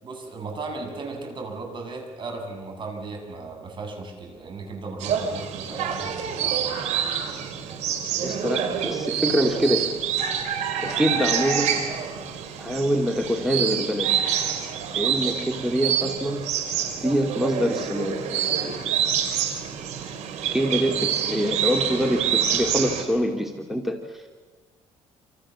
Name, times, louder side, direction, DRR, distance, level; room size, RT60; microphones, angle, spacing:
voice 1, 0.0-6.8, right 3 dB, 45° right, 4 dB, 7.8 m, -36 dB
sound 1, 5.0-23.0, right 8 dB, 75° right, 4.4 m, -27 dB
voice 2, 8.2-9.9 10.8-11.8 12.6-14.2 14.9-16.4 17.0-18.8 20.5-24.4, equal, 5° right, 3 dB, 2.5 m, -25 dB
28.0 x 27.5 x 7.5 m, 1.3 s
cardioid pair, 110°, 12 cm